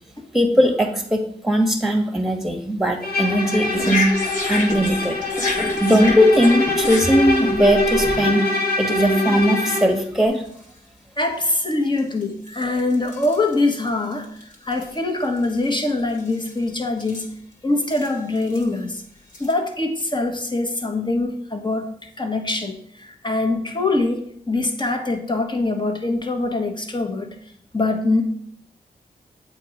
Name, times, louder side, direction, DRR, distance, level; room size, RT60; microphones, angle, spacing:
voice 1, 0.3-4.1 4.5-5.2 5.8-8.5 8.8-10.4, equal, ahead, 4 dB, 1.5 m, -19 dB
Bowed string instrument, 3.0-10.0, left 2 dB, 70° left, 1.5 m, -23 dB
sound 1, 3.7-8.2 8.9-9.0 9.4-9.8 10.5-10.6 11.6-11.7 12.0-15.0 15.2-16.7 17.0-17.3 17.8-18.7 19.3-19.5, left 2 dB, 50° left, 1.8 m, -30 dB
voice 2, 11.2-17.3 17.6-19.0 19.4-27.4 27.7-28.2, left 2 dB, 30° left, 4 dB, 1.3 m, -23 dB
7.6 x 3.0 x 5.0 m, 0.65 s
cardioid pair, 45°, 16 cm